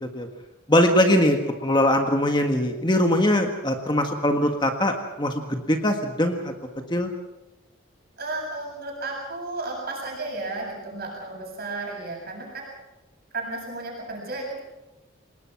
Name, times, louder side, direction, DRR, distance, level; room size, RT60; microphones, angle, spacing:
voice 1, 0.7-6.5 6.9-7.1, left 1 dB, 20° left, 4 dB, 1.6 m, -22 dB
voice 2, 8.2-12.7 13.3-14.6, right 2 dB, 45° right, -2 dB, 7.8 m, -33 dB
29.0 x 19.0 x 6.0 m, 1.1 s
head